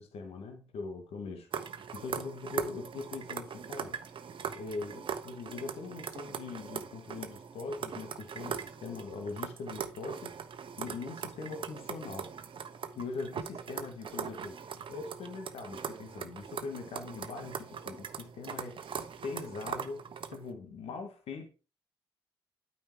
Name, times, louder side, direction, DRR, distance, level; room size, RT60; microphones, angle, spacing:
voice 1, 0.0-1.5 1.9-4.0 4.5-10.3 10.8-12.3 12.9-14.6 14.9-18.8 19.2-21.5, left 4 dB, 70° left, 2.0 m, -41 dB
sound 1, 1.5-20.5, right 7 dB, 55° right, 1.1 m, -41 dB
9.1 x 5.3 x 4.7 m
hypercardioid pair, 50°, 11 cm